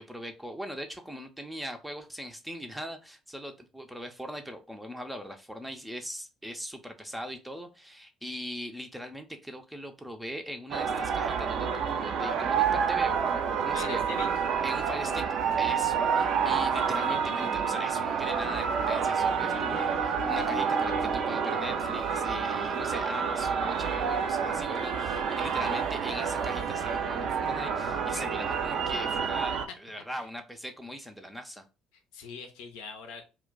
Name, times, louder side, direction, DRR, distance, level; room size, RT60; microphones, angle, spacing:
voice 1, 0.0-14.0 14.6-15.3 15.6-31.7, equal, 5° right, 6 dB, 0.5 m, -40 dB
sound 1, 10.7-29.6, right 6 dB, 55° right, 0.4 m, -28 dB
voice 2, 13.7-14.3 31.9-33.2, left 4 dB, 70° left, 5 dB, 0.6 m, -41 dB
sound 2, 15.5-18.8 19.4-21.3, left 1 dB, 90° right, 0.8 m, -42 dB
2.2 x 2.2 x 3.8 m, 0.29 s
figure-of-eight pair, 55°, 0 cm